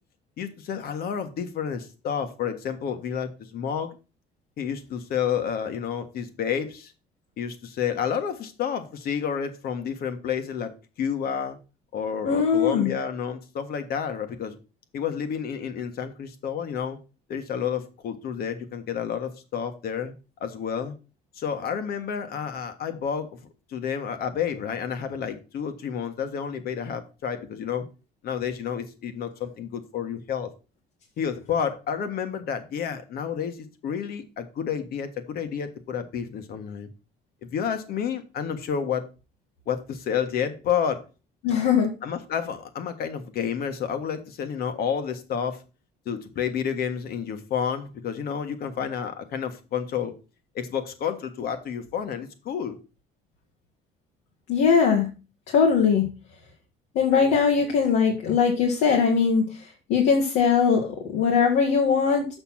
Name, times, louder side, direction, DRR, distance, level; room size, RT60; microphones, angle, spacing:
voice 1, 0.4-4.0 4.6-6.9 7.4-10.7 11.0-11.6 11.9-14.6 14.9-17.0 17.3-20.1 20.4-20.9 21.4-23.4 23.7-27.9 28.2-30.5 31.2-36.9 37.4-39.1 39.7-41.0 42.0-45.6 46.0-50.1 50.5-52.8, left 7 dB, 65° left, 1.5 m, -30 dB
voice 2, 12.2-12.9 41.4-41.9 54.5-55.1 55.5-56.1 56.9-62.3, left 6 dB, 85° left, 1.6 m, -21 dB
7.0 x 5.8 x 5.7 m
cardioid pair, 110°, 17 cm